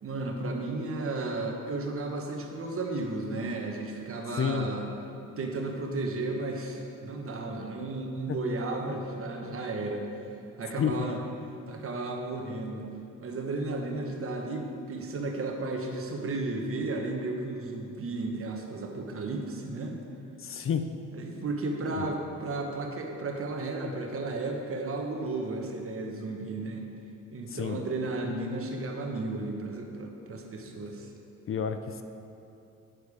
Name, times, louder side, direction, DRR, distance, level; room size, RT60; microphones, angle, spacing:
voice 1, 0.0-4.9 5.4-10.1 10.6-11.2 11.7-12.8 13.2-20.0 21.1-26.8 27.3-31.1, right 2 dB, 45° right, 2 dB, 1.3 m, -34 dB
voice 2, 4.4-4.7 10.8-10.9 20.4-20.8 21.9-22.1 27.6-27.8 31.5-31.8, left 8 dB, 45° left, 9 dB, 0.5 m, -28 dB
9.3 x 6.6 x 4.9 m, 2.7 s
cardioid pair, 90°, 30 cm